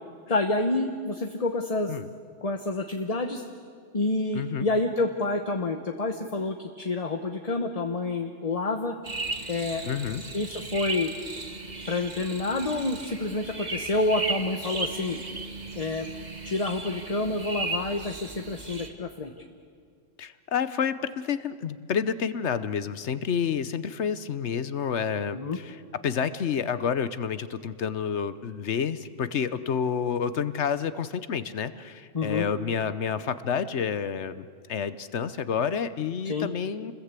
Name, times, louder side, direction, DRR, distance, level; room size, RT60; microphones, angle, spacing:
voice 1, 0.3-1.9 2.4-3.4 3.9-8.9 9.5-9.8 10.3-11.1 11.9-15.2 15.7-16.1 16.4-19.4 25.3-25.6 32.1-32.5 36.2-36.5, left 2 dB, 30° left, 5 dB, 1.1 m, -28 dB
voice 2, 4.3-4.7 9.8-10.2 20.2-25.8 26.0-36.9, left 7 dB, 65° left, 14 dB, 1.1 m, -29 dB
sound 1, 9.0-18.9, right 3 dB, 35° right, 1.7 m, -36 dB
29.5 x 21.0 x 8.3 m, 2.2 s
omnidirectional pair, 1.3 m